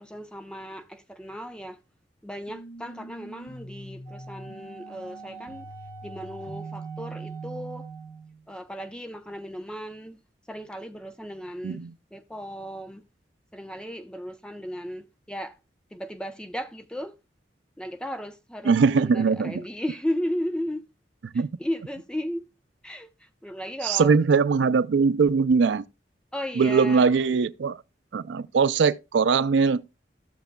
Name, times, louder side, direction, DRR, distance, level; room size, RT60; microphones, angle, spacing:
voice 1, 0.0-1.8 2.2-5.7 6.0-7.9 8.5-10.2 10.5-11.8 12.1-13.0 13.5-15.5 15.9-17.1 17.8-20.8 21.3-22.4 22.8-24.1 26.3-27.1, equal, 5° left, 0.6 m, -35 dB
sound 1, 2.5-8.4, right 2 dB, 70° left, 3.0 m, -42 dB
Wind instrument woodwind instrument, 4.0-8.2, right 8 dB, 25° left, 2.6 m, -46 dB
voice 2, 18.6-19.6 21.3-21.5 23.8-25.8 26.6-27.8 28.1-29.8, right 5 dB, 80° right, 0.4 m, -21 dB
15.0 x 6.8 x 2.2 m
head